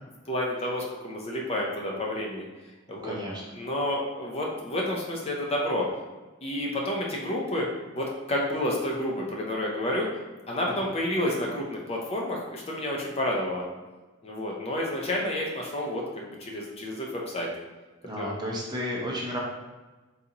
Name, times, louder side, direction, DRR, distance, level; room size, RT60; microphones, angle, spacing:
voice 1, 0.3-2.4 2.9-3.2 3.5-5.9 6.4-7.7 7.9-10.1 10.5-13.6 14.2-17.5 18.2-18.3, left 1 dB, 30° left, -2 dB, 0.6 m, -30 dB
voice 2, 3.0-3.4 18.0-19.4, equal, 20° right, -3 dB, 0.7 m, -32 dB
3.9 x 3.9 x 2.8 m, 1.2 s
head